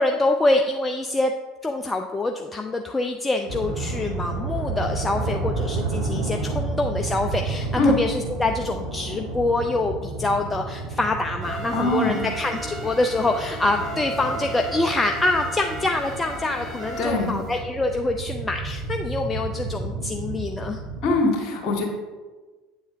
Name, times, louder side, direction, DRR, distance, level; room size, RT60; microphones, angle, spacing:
voice 1, 0.0-1.3 1.6-20.8, left 2 dB, 15° left, 4 dB, 0.4 m, -25 dB
sound 1, 3.5-21.1, right 3 dB, 65° right, 1.6 m, -31 dB
sound 2, 11.4-17.6, right 2 dB, 35° right, 1.7 m, -36 dB
voice 2, 11.7-12.3 17.0-17.4 21.0-21.8, left 2 dB, 45° left, 1 dB, 1.6 m, -22 dB
8.3 x 7.0 x 2.6 m, 1.3 s
figure-of-eight pair, 70°, 0 cm